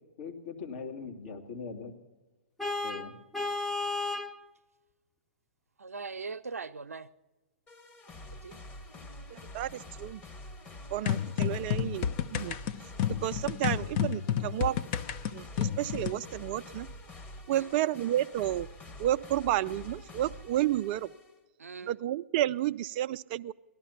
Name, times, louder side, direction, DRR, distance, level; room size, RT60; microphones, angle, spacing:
voice 1, 0.2-1.9 2.8-3.1, left 5 dB, 55° left, 2.4 m, -41 dB
Vehicle horn car horn honking, 2.6-4.4, left 3 dB, ahead, 0.7 m, -33 dB
voice 2, 5.8-7.1 8.3-8.6 17.5-17.8 21.6-21.9, right 4 dB, 90° right, 0.6 m, -41 dB
sound 1, 7.7-21.4, left 1 dB, 20° left, 1.5 m, -47 dB
voice 3, 9.3-10.2 10.9-12.6 13.2-14.8 15.3-16.9 17.5-18.7 19.0-21.1 21.9-23.5, right 13 dB, 40° right, 0.4 m, -31 dB
sound 2, 11.1-16.2, left 9 dB, 40° left, 0.7 m, -31 dB
18.0 x 12.0 x 5.8 m
hypercardioid pair, 125°, 8 cm